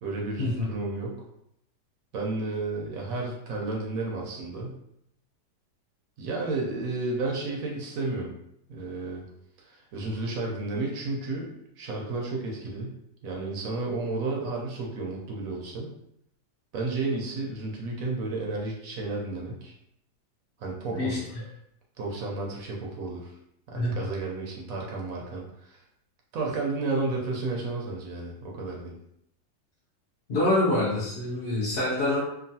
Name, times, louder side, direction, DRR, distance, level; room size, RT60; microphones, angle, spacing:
voice 1, 0.0-1.2 2.1-4.8 6.2-8.3 8.7-9.2 9.6-13.0 13.2-15.9 16.7-19.7 20.6-21.2 22.0-23.4 23.7-25.8 26.3-28.9, right 3 dB, 70° right, -1 dB, 0.9 m, -32 dB
voice 2, 30.3-32.2, left 1 dB, 65° left, -8 dB, 0.6 m, -25 dB
2.9 x 2.4 x 2.7 m, 0.77 s
omnidirectional pair, 1.9 m